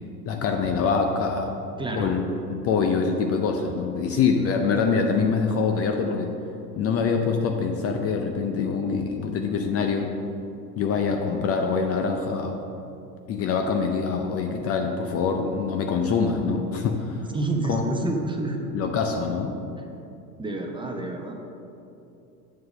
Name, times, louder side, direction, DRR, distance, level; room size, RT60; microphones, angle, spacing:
voice 1, 0.3-1.5 1.9-2.2 2.5-6.3 6.8-10.1 10.8-12.5 13.3-17.3 17.7-17.8 18.7-19.5, left 5 dB, 30° left, 4 dB, 0.6 m, -24 dB
voice 2, 1.8-2.2 17.3-18.6 19.8-19.9 20.4-21.3, right 2 dB, 10° right, 2 dB, 0.8 m, -28 dB
8.2 x 4.6 x 6.4 m, 2.7 s
hypercardioid pair, 95°, 47 cm